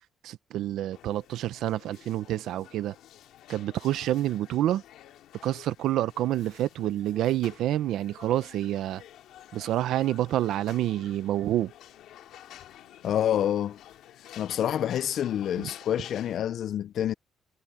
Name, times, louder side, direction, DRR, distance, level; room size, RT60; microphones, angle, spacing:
voice 1, 0.2-2.9 3.5-4.8 5.4-9.0 9.5-11.7, right 13 dB, 85° right, 0.6 m, -28 dB
sound 1, 0.9-16.4, left 12 dB, 85° left, 2.0 m, -51 dB
voice 2, 13.0-13.8 14.4-17.1, left 10 dB, 70° left, 0.3 m, -27 dB
cardioid pair, 90°, 0 cm